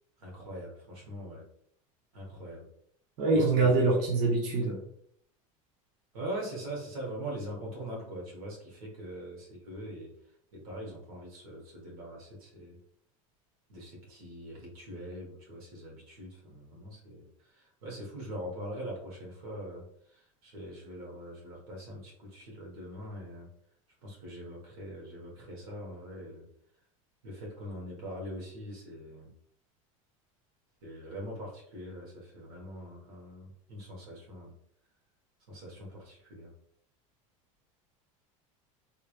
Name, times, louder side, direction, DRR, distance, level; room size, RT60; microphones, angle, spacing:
voice 1, 0.2-1.4 2.1-2.7 3.3-4.2 6.1-10.1 10.5-12.8 13.7-23.5 24.0-26.5 27.2-29.3 30.8-34.5 35.5-36.5, right 1 dB, 90° right, -2 dB, 1.5 m, -42 dB
voice 2, 3.2-4.8, right 3 dB, 55° right, -3 dB, 1.0 m, -25 dB
3.2 x 2.8 x 2.5 m, 0.66 s
supercardioid pair, 115°, 18 cm